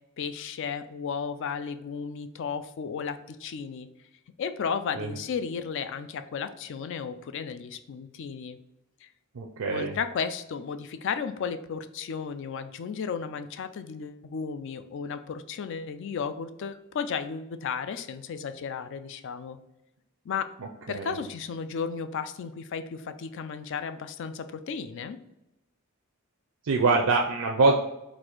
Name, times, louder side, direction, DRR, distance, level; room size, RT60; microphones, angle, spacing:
voice 1, 0.2-3.9 4.4-8.6 9.0-9.1 9.7-19.6 20.3-20.5 20.9-25.2, left 6 dB, 60° left, 10 dB, 0.3 m, -34 dB
voice 2, 9.3-10.0 20.9-21.2 26.6-27.8, right 3 dB, 85° right, 0 dB, 0.5 m, -24 dB
4.1 x 2.5 x 4.4 m, 0.91 s
head